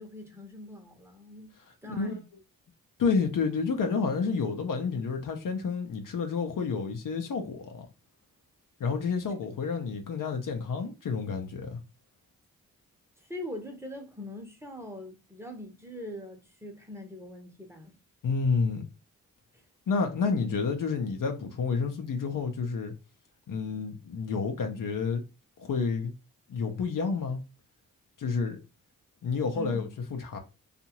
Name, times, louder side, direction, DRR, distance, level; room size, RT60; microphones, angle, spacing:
voice 1, 0.0-1.5 1.8-2.2 13.2-17.9 19.5-19.6 29.5-29.9, left 1 dB, 5° right, 0.9 m, -42 dB
voice 2, 1.8-2.2 3.0-7.9 8.8-11.8 18.2-18.8 19.9-22.9 23.5-25.2 25.6-26.1 26.5-27.4 28.2-28.6 29.2-30.4, left 5 dB, 60° left, 0.7 m, -29 dB
2.6 x 2.5 x 2.9 m
supercardioid pair, 40°, 37 cm